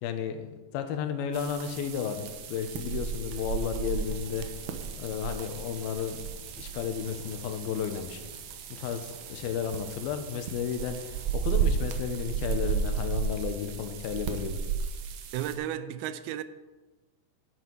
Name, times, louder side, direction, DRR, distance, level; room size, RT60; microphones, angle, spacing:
voice 1, 0.0-4.5 4.9-6.3 6.6-8.2 8.7-14.6, left 8 dB, 85° left, 2.7 m, -33 dB
sound 1, 1.3-15.6, right 7 dB, 70° right, 2.0 m, -34 dB
sound 2, 3.2-13.2, equal, 25° left, 0.8 m, -52 dB
voice 2, 15.3-16.4, right 11 dB, 85° right, 2.5 m, -33 dB
11.0 x 9.3 x 4.5 m
omnidirectional pair, 4.3 m